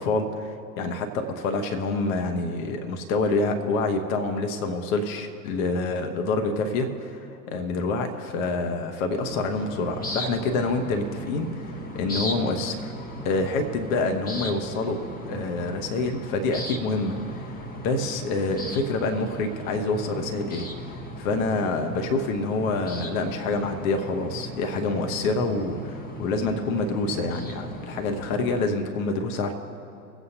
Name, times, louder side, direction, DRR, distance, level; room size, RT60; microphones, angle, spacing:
voice 1, 0.0-11.5 11.9-12.9 13.2-15.0 15.3-17.2 17.5-20.7 21.2-29.5, left 3 dB, 50° left, 5 dB, 1.4 m, -27 dB
sound 1, 9.2-28.7, right 1 dB, 15° left, 1.3 m, -37 dB
24.0 x 8.1 x 2.9 m, 2.6 s
figure-of-eight pair, 95°, 50 cm